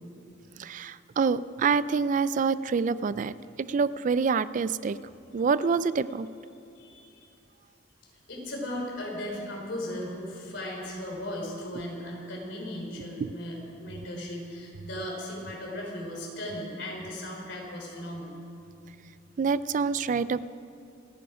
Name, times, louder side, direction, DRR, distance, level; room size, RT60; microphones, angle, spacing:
voice 1, 0.6-5.0 5.3-6.3 13.2-13.3 19.4-20.5, right 5 dB, 40° right, 17 dB, 0.3 m, -26 dB
voice 2, 6.8-7.3 8.3-18.4, left 1 dB, 70° left, -1 dB, 4.0 m, -37 dB
28.0 x 10.0 x 4.9 m, 2.6 s
head